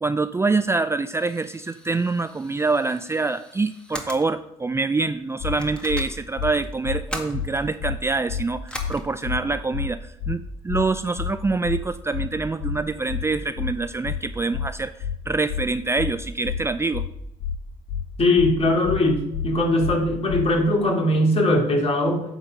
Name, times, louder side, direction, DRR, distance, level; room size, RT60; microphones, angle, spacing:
voice 1, 0.0-17.1, right 3 dB, 15° right, 11 dB, 0.4 m, -25 dB
sound 1, 1.2-4.3 5.0-5.1 5.6-7.8 8.7-9.0, left 1 dB, 5° left, 1.9 m, -39 dB
sound 2, 5.4-5.6 5.9-6.0 6.4-6.5 6.8-7.0 7.3-7.5 7.8-8.0 8.3-8.4 8.8-8.9 9.2-9.4 9.7-9.9 10.2-10.4 10.7-10.8 11.2-11.3 11.6-11.8 12.1-12.3 12.6-12.8 13.1-13.2 13.6-13.7 14.0-14.2 14.5-14.7 15.0-15.2 15.5-15.6 16.0-16.1 16.4-16.6 16.9-17.1 17.4-17.6 17.9-18.0 18.4-18.5 18.8-19.0 19.3-19.5 19.8-20.0 20.3-20.4, left 8 dB, 60° left, 1.6 m, -28 dB
voice 2, 18.2-22.2, left 1 dB, 40° left, 0 dB, 2.6 m, -20 dB
9.1 x 4.1 x 6.5 m, 0.81 s
supercardioid pair, 65°, 15 cm